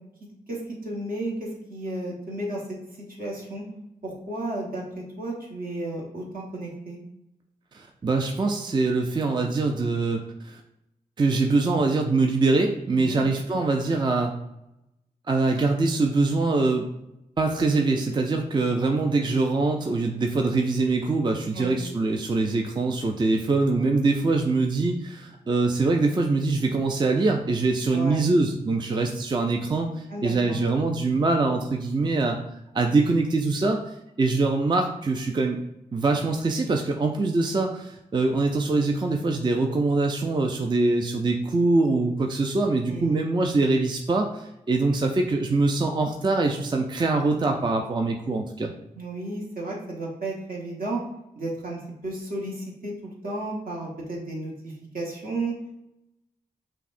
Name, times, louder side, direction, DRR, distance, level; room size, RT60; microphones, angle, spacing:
voice 1, 0.5-2.8 3.2-3.6 4.0-7.0 12.9-13.2 21.5-21.8 27.9-28.2 30.1-30.6 42.9-43.2 48.9-51.0 51.3-55.6, right 2 dB, 65° right, -3 dB, 1.1 m, -33 dB
voice 2, 7.7-10.6 11.2-14.3 15.3-16.8 17.4-32.4 32.7-33.8 34.2-35.6 35.9-48.7, right 3 dB, 30° right, 3 dB, 0.4 m, -23 dB
5.6 x 2.1 x 2.5 m, 0.88 s
cardioid pair, 50°, 16 cm